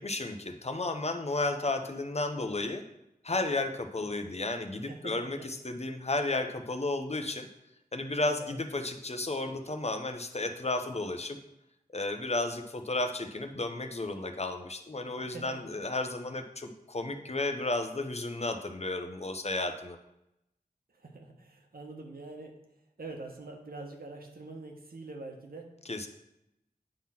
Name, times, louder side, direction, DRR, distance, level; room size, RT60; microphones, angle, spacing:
voice 1, 0.0-2.8 3.2-7.5 7.9-11.4 11.9-20.0 25.9-26.1, left 2 dB, 40° left, 6 dB, 0.9 m, -33 dB
voice 2, 4.9-5.3 8.4-8.6 15.2-15.6 20.9-22.5 23.0-25.7, right 3 dB, 70° right, 1 dB, 1.3 m, -44 dB
8.9 x 3.8 x 5.9 m, 0.85 s
wide cardioid pair, 60°, 16 cm